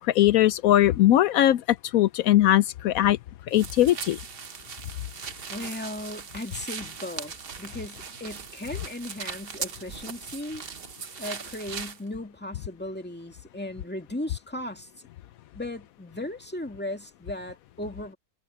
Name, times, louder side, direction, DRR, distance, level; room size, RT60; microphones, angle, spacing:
voice 1, 0.1-1.6 1.9-3.2 3.5-4.2, left 13 dB, 90° left, 0.7 m, -20 dB
sound 1, 3.5-12.0, right 6 dB, 40° right, 0.9 m, -39 dB
voice 2, 5.5-10.7 11.2-15.1 15.5-18.2, left 1 dB, 5° left, 2.0 m, -37 dB
omnidirectional pair, 2.0 m